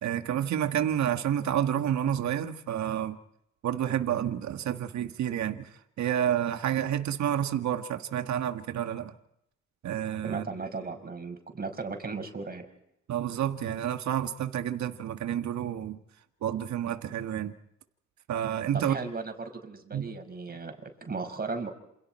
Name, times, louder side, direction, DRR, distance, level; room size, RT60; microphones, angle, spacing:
voice 1, 0.0-3.2 3.6-5.7 6.0-9.1 9.8-10.5 13.1-16.0 16.4-17.5 18.3-19.0 19.9-20.1, right 10 dB, 65° right, 8 dB, 1.7 m, -29 dB
voice 2, 10.2-12.7 18.7-21.7, right 4 dB, 30° right, 6 dB, 5.5 m, -36 dB
28.5 x 27.0 x 4.4 m, 0.78 s
cardioid pair, 90°, 30 cm